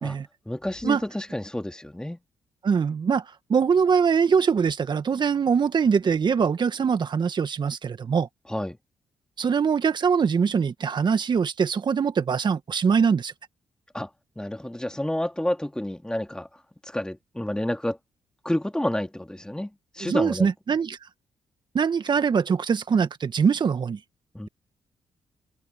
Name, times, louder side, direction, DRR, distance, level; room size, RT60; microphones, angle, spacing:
voice 1, 0.5-2.2 8.5-8.8 13.9-14.1 14.4-16.5 16.8-18.0 18.4-20.5 24.3-24.5, left 1 dB, 10° left, 2.7 m, -29 dB
voice 2, 2.6-3.2 3.5-8.3 9.4-13.3 20.1-21.0 21.7-24.0, right 6 dB, 50° right, 1.9 m, -23 dB
supercardioid pair, 55°, 10 cm